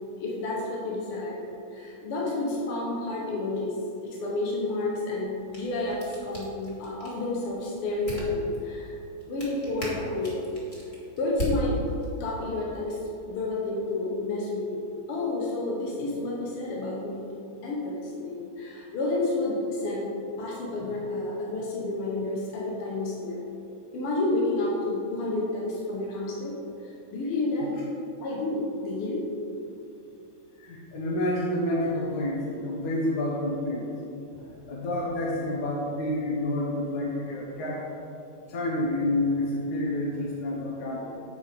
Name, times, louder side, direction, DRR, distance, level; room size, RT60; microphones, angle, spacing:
voice 1, 0.2-3.8 4.0-9.0 9.3-10.5 11.2-11.8 12.2-13.0 13.3-14.8 15.1-17.3 17.6-20.1 20.4-23.4 23.9-26.6 27.1-27.7 28.2-29.3, left 2 dB, 80° left, -3 dB, 1.9 m, -30 dB
sound 1, 5.2-12.3, equal, 30° left, 1.7 m, -37 dB
voice 2, 30.6-33.9 34.7-37.9 38.5-41.1, left 1 dB, 60° left, -4 dB, 1.3 m, -29 dB
8.5 x 4.7 x 4.9 m, 2.7 s
omnidirectional pair, 2.4 m